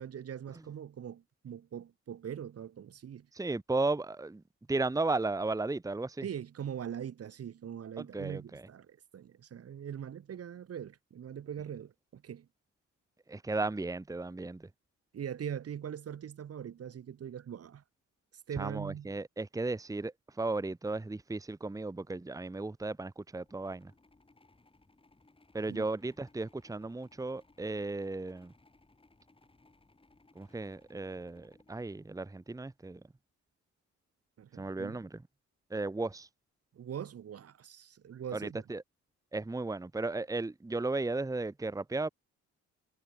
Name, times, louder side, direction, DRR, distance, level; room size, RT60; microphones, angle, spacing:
voice 1, 0.0-3.3 6.2-12.5 15.1-17.8 18.5-19.2 25.7-25.9 34.4-35.0 36.7-38.7, right 9 dB, 50° right, 1.8 m, -42 dB
voice 2, 3.4-4.4 4.7-6.2 8.0-8.6 13.3-14.6 18.6-20.1 20.4-23.9 25.5-28.5 30.4-33.0 34.6-35.1 35.7-36.3 38.3-38.8 39.3-42.1, right 3 dB, 10° right, 1.2 m, -35 dB
sound 1, 23.3-32.7, left 2 dB, 20° left, 7.1 m, -65 dB
cardioid pair, 90°, 30 cm